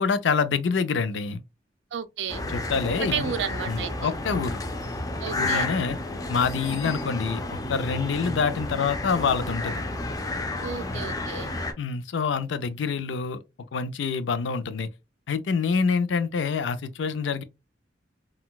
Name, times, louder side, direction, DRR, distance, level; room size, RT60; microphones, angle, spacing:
voice 1, 0.0-1.4 2.5-3.3 3.7-4.6 5.4-6.0 6.3-9.7 11.8-13.4 13.7-14.9 15.3-17.4, left 5 dB, 85° left, 0.4 m, -26 dB
voice 2, 1.9-2.4 3.0-4.1 5.2-5.7 6.7-7.0 10.6-11.5, right 7 dB, 80° right, 0.4 m, -32 dB
sound 1, 2.3-11.7, left 2 dB, 20° left, 0.4 m, -31 dB
3.8 x 2.2 x 2.3 m
head